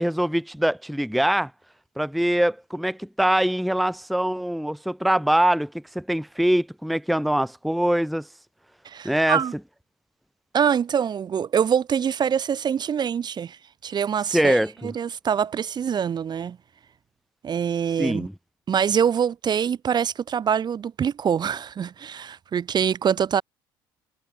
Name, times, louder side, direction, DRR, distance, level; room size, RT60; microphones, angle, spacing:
voice 1, 0.0-1.5 2.0-8.3 9.0-9.4 14.3-14.9 18.0-18.3, right 1 dB, ahead, 0.5 m, -23 dB
voice 2, 8.8-9.5 10.5-16.6 17.4-18.3 18.7-23.4, right 8 dB, 40° right, 0.7 m, -24 dB
hypercardioid pair, 55°, 12 cm